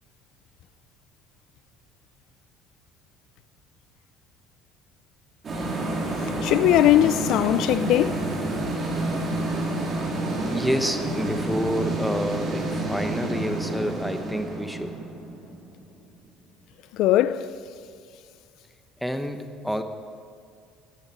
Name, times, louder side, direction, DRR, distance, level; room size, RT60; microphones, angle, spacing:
sound 1, 5.4-16.0, right 1 dB, 35° right, 4.7 m, -29 dB
voice 1, 6.4-8.2 16.9-17.5, left 13 dB, 70° left, 0.6 m, -20 dB
voice 2, 10.5-15.0 19.0-19.8, equal, ahead, 1.1 m, -28 dB
14.0 x 10.5 x 9.7 m
supercardioid pair, 90°, 0 cm